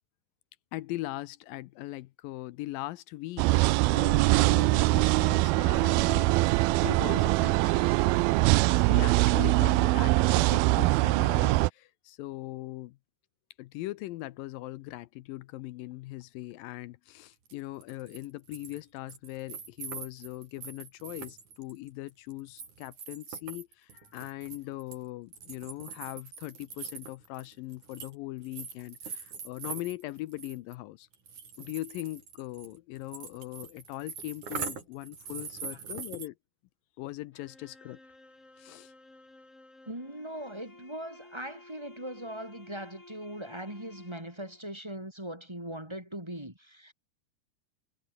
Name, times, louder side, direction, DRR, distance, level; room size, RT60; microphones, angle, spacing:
voice 1, 0.7-3.6 3.9-13.0 13.6-31.1 31.6-36.4 37.0-38.0 38.6-38.9, left 17 dB, 80° left, 2.2 m, -40 dB
sound 1, 3.4-11.7, right 20 dB, 85° right, 2.4 m, -23 dB
sound 2, 17.5-17.6 17.8-18.8 19.1-25.0 25.3-28.1 28.4-30.7 31.1-36.3, right 6 dB, 50° right, 5.6 m, -42 dB
sound 3, 37.3-44.6, left 2 dB, 20° left, 6.3 m, -54 dB
voice 2, 39.9-46.9, right 1 dB, 5° right, 3.3 m, -40 dB
omnidirectional pair, 4.5 m